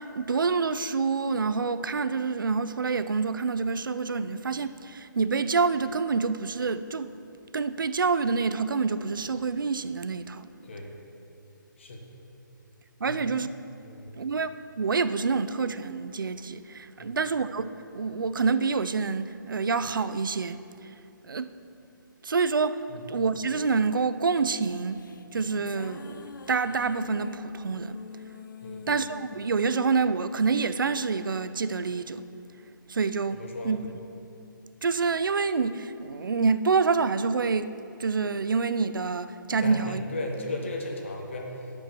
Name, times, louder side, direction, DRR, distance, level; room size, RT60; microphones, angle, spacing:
voice 1, 0.0-7.1 7.5-10.5 13.0-13.5 14.1-14.5 14.8-20.6 21.2-21.5 22.2-25.0 25.3-28.0 28.9-32.3 32.9-33.8 34.8-37.7 38.0-40.0, right 4 dB, 75° right, 0.5 m, -27 dB
voice 2, 10.6-10.9 11.8-12.0 13.1-13.2 13.8-14.2 17.0-17.2 22.9-23.0 28.6-28.9 33.3-33.8 39.6-41.7, left 2 dB, 35° left, 1.1 m, -36 dB
sound 1, 24.9-31.3, left 5 dB, 70° left, 0.4 m, -44 dB
11.0 x 5.3 x 6.2 m
hypercardioid pair, 180°, 11 cm